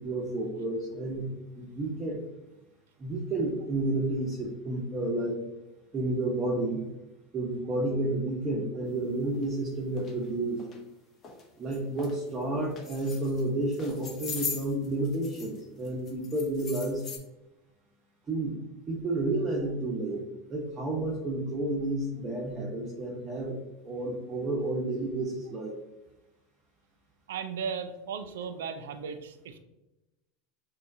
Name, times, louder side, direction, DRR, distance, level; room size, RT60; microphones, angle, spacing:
voice 1, 0.0-2.2 3.0-5.3 5.9-6.8 7.3-10.6 11.6-17.0 18.3-18.5 18.9-20.2 20.5-23.6 23.8-25.7, right 2 dB, 30° right, -2 dB, 0.9 m, -31 dB
sound 1, 9.3-9.4 10.0-10.1 10.6-10.8 11.2-11.4 11.7-12.1 12.7-13.4 13.7-15.6 15.8-17.2, left 5 dB, 35° left, 0.8 m, -39 dB
voice 2, 27.3-29.6, right 6 dB, 85° right, 9 dB, 0.4 m, -36 dB
6.0 x 2.3 x 2.6 m, 0.98 s
hypercardioid pair, 95°, 0 cm